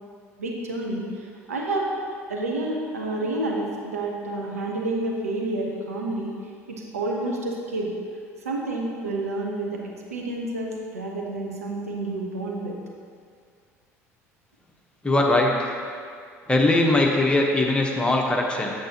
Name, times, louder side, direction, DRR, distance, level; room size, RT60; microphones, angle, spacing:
voice 1, 0.4-1.1 1.5-1.9 2.3-6.4 6.7-7.9 8.4-12.8, right 2 dB, 80° right, -1 dB, 0.8 m, -29 dB
voice 2, 15.0-15.7 16.5-18.7, left 2 dB, 15° left, -1 dB, 1.1 m, -21 dB
7.9 x 7.3 x 2.9 m, 2.2 s
figure-of-eight pair, 60°, 8 cm